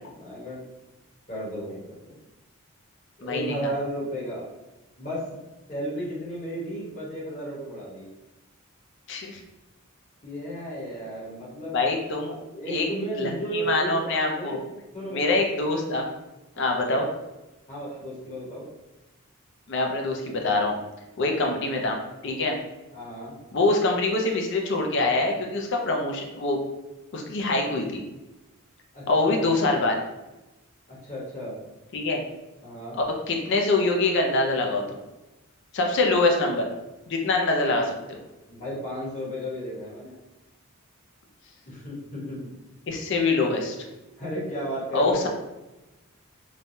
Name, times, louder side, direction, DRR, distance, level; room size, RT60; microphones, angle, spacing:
voice 1, 0.1-0.6 1.3-1.8 2.1-2.2 3.2-4.5 5.0-5.3 5.7-8.1 10.2-11.8 12.5-14.6 14.9-15.5 16.5-17.0 17.7-18.7 21.2-21.4 22.9-23.4 28.9-29.4 30.9-31.6 32.6-33.0 36.1-36.5 38.5-40.2 41.7-42.5 44.2-45.3, right 1 dB, 35° left, -6 dB, 1.0 m, -34 dB
voice 2, 3.2-3.6 9.1-9.4 11.7-12.4 12.7-12.8 13.2-14.6 15.1-16.1 16.6-17.1 19.7-20.7 21.2-22.6 23.5-26.6 27.1-28.0 29.1-30.0 31.9-32.2 33.3-34.8 35.7-36.6 37.1-38.2 42.9-43.8 44.9-45.3, left 2 dB, 55° left, 1 dB, 0.5 m, -24 dB
3.2 x 2.2 x 2.6 m, 1.0 s
head